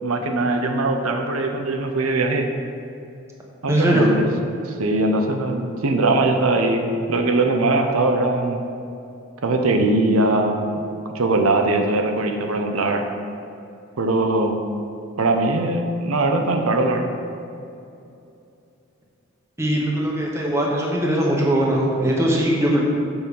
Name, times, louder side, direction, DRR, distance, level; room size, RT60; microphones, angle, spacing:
voice 1, 0.0-2.5 3.6-4.2 4.8-8.6 9.4-10.6 11.1-13.0 14.0-14.6 15.2-17.1, right 2 dB, 90° right, 4 dB, 0.8 m, -21 dB
voice 2, 3.7-4.1 19.6-22.8, right 1 dB, 15° right, -2 dB, 1.0 m, -20 dB
7.1 x 5.5 x 5.3 m, 2.6 s
head